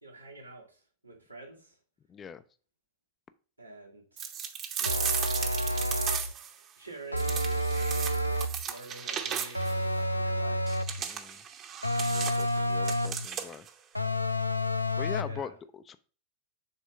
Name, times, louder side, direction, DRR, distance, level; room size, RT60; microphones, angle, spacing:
voice 1, 0.0-1.8 3.6-4.3 4.8-5.1 6.1-6.4 6.8-10.9 15.2-15.5, right 3 dB, 90° right, -3 dB, 2.1 m, -48 dB
voice 2, 2.1-2.4 11.0-11.4 12.0-13.7 14.9-16.0, left 7 dB, 25° left, 12 dB, 0.5 m, -42 dB
sound 1, 4.2-6.5 7.2-9.8 10.7-13.7, right 8 dB, 30° right, 0.9 m, -35 dB
sound 2, 4.8-6.3 7.1-8.6 9.5-11.0 11.8-13.3 13.9-15.4, equal, 85° left, 0.4 m, -29 dB
6.7 x 3.6 x 5.5 m, 0.39 s
figure-of-eight pair, 90°, 0 cm